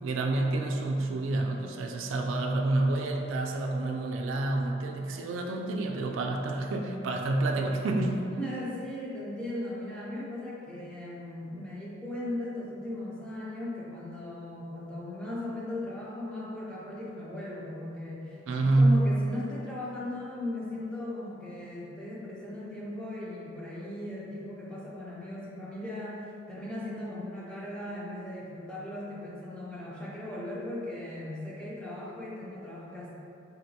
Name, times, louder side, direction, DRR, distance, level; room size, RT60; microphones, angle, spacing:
voice 1, 0.0-8.2 18.5-19.1, right 2 dB, 85° right, 2 dB, 0.3 m, -28 dB
voice 2, 8.2-33.1, left 1 dB, 5° left, -7 dB, 0.5 m, -38 dB
3.8 x 2.2 x 2.7 m, 2.7 s
head